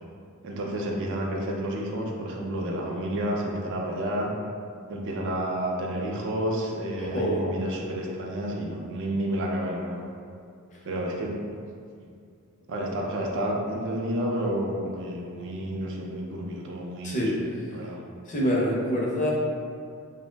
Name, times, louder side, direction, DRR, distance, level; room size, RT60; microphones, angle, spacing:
voice 1, 0.4-4.3 4.9-10.1 10.8-11.6 12.7-17.3 17.7-18.0, right 1 dB, 55° right, -1 dB, 0.4 m, -30 dB
voice 2, 7.0-7.4 17.0-17.3 18.3-19.3, equal, 35° left, -4 dB, 0.5 m, -25 dB
2.6 x 2.0 x 3.2 m, 2.3 s
head